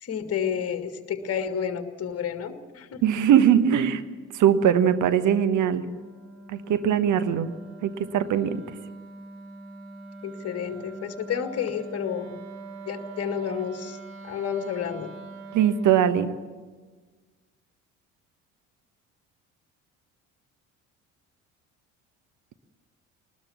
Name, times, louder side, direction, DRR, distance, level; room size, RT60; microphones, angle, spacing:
voice 1, 0.0-3.0 10.2-12.3 12.9-14.0 14.2-15.1, left 8 dB, 35° left, 8 dB, 2.1 m, -30 dB
voice 2, 3.0-4.0 4.3-5.9 6.5-7.5 7.8-8.6 15.5-16.3, right 9 dB, 45° right, 11 dB, 1.3 m, -21 dB
Wind instrument woodwind instrument, 3.0-16.0, right 3 dB, 70° right, 3.4 m, -44 dB
21.0 x 20.0 x 7.2 m, 1.4 s
figure-of-eight pair, 55°, 42 cm